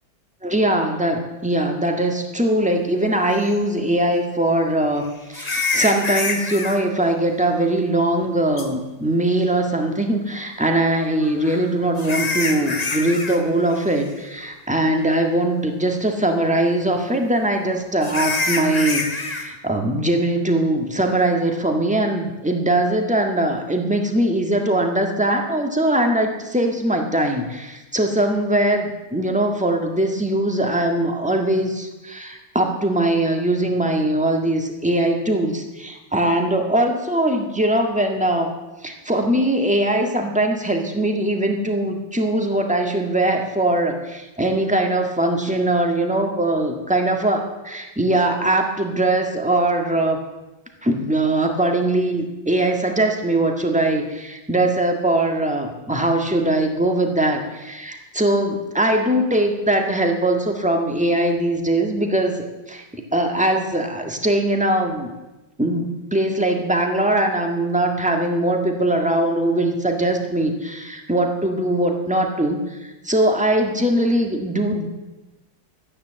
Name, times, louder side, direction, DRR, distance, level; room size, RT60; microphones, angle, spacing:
voice 1, 0.4-38.5 38.8-50.2 50.8-65.1 65.6-74.9, right 1 dB, 5° right, 3 dB, 1.4 m, -21 dB
sound 1, 3.5-3.6 5.3-6.8 8.6-8.7 11.2-13.4 13.7-14.0 14.4-14.5 15.1-15.2 18.0-19.5, left 3 dB, 25° left, 1.0 m, -26 dB
13.5 x 9.8 x 7.5 m, 1.0 s
omnidirectional pair, 2.1 m